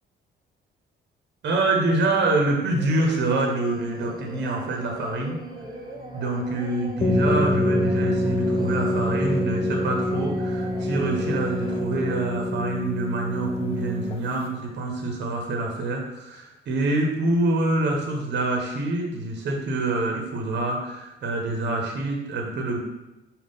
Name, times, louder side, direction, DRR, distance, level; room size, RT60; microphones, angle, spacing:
voice 1, 1.4-5.4 6.1-22.8, right 2 dB, 60° right, 1 dB, 0.8 m, -26 dB
Singing, 2.7-12.2, right 2 dB, 20° right, 0.6 m, -41 dB
sound 1, 4.0-12.4, left 1 dB, 45° left, 0.9 m, -45 dB
sound 2, 7.0-14.5, left 1 dB, 30° left, 0.5 m, -25 dB
5.3 x 2.4 x 3.5 m, 0.99 s
cardioid pair, 90°, 20 cm